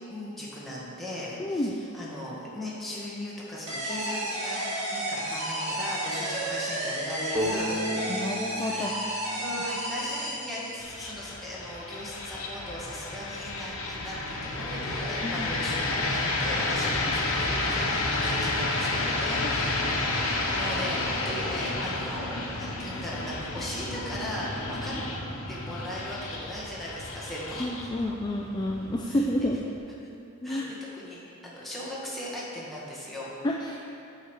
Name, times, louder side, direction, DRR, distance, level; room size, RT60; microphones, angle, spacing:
voice 1, 0.1-8.1 8.5-25.0 25.5-27.9 29.1-29.2 30.4-33.3, left 1 dB, ahead, -8 dB, 1.6 m, -38 dB
voice 2, 1.4-1.7 8.1-8.9 15.2-15.5 19.4-19.5 27.6-29.6 30.4-30.7 33.4-33.8, left 1 dB, 20° left, 0 dB, 0.4 m, -29 dB
sound 1, 3.7-11.0, right 1 dB, 30° right, 1.6 m, -32 dB
sound 2, 7.3-11.0, equal, 15° right, 0.9 m, -35 dB
sound 3, 10.8-29.8, left 2 dB, 75° left, 1.0 m, -31 dB
8.2 x 5.9 x 4.8 m, 2.7 s
head